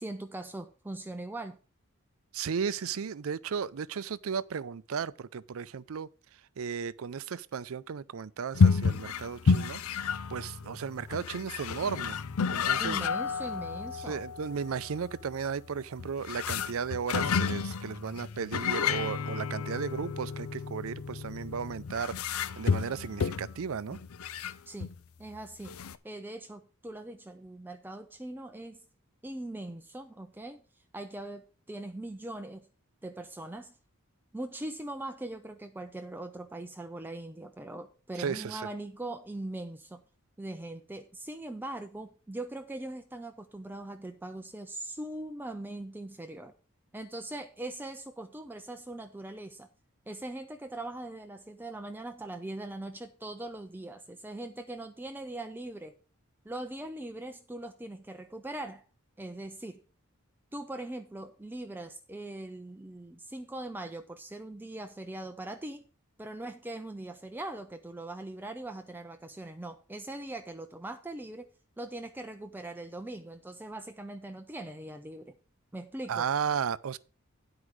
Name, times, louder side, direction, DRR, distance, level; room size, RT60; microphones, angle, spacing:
voice 1, 0.0-1.6 12.8-14.2 24.7-24.9 25.2-25.8 26.0-28.8 29.2-30.6 30.9-32.7 33.0-33.8 34.3-40.0 40.4-46.5 46.9-49.7 50.1-56.0 56.4-58.8 59.2-59.8 60.5-65.9 66.2-75.3 75.7-76.3, right 1 dB, 10° right, 0.4 m, -41 dB
voice 2, 2.3-6.1 6.6-12.2 12.5-13.0 14.1-22.2 22.6-24.0 38.2-38.7 76.1-77.0, right 6 dB, 70° right, 0.4 m, -35 dB
sound 1, 8.5-25.0 25.3-25.4 25.6-26.0, left 5 dB, 80° left, 0.5 m, -31 dB
9.8 x 4.8 x 6.2 m
head